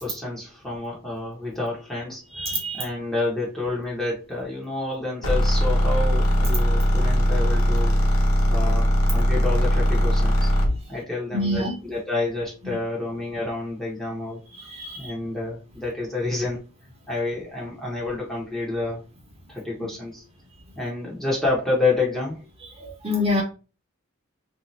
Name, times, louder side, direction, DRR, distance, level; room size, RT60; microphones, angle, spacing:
voice 1, 0.0-2.5 2.7-8.0 8.5-10.5 10.9-14.4 15.0-16.6 17.1-19.0 19.5-20.2 20.8-22.4, left 2 dB, ahead, -5 dB, 0.9 m, -29 dB
voice 2, 2.3-2.9 8.4-8.5 11.3-11.8 12.6-12.8 14.6-15.1 22.8-23.4, left 1 dB, 25° right, 0 dB, 1.0 m, -27 dB
sound 1, 5.2-10.8, equal, 75° left, 1.0 m, -20 dB
3.4 x 2.7 x 3.1 m, 0.33 s
head